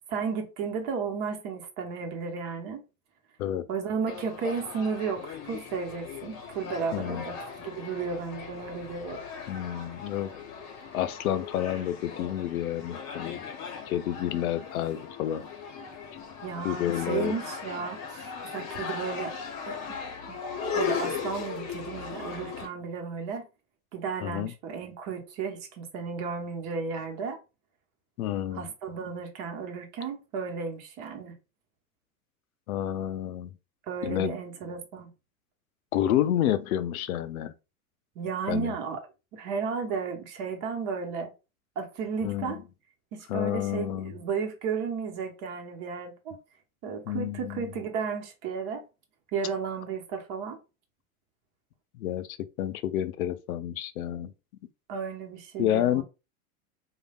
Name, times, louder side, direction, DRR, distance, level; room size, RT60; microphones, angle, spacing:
voice 1, 0.1-2.8 3.7-7.3 7.6-9.2 16.4-19.3 19.7-20.0 20.3-20.4 20.7-23.5 23.9-27.4 28.5-31.3 33.9-35.1 38.1-39.0 39.3-41.3 41.8-42.6 43.1-46.4 46.8-48.8 49.3-50.6 54.9-56.0, right 5 dB, 45° right, 1.0 m, -33 dB
sound 1, 4.1-22.7, left 6 dB, 40° left, 0.9 m, -38 dB
voice 2, 6.9-7.3 9.5-10.4 10.9-13.5 13.9-15.4 16.6-17.4 24.2-24.5 28.2-28.7 32.7-33.5 34.0-34.3 35.9-37.5 38.5-38.8 42.2-42.6 43.3-44.1 47.1-47.7 51.9-54.3 55.6-56.0, left 11 dB, 75° left, 0.5 m, -29 dB
3.1 x 2.3 x 2.3 m
hypercardioid pair, 90°, 43 cm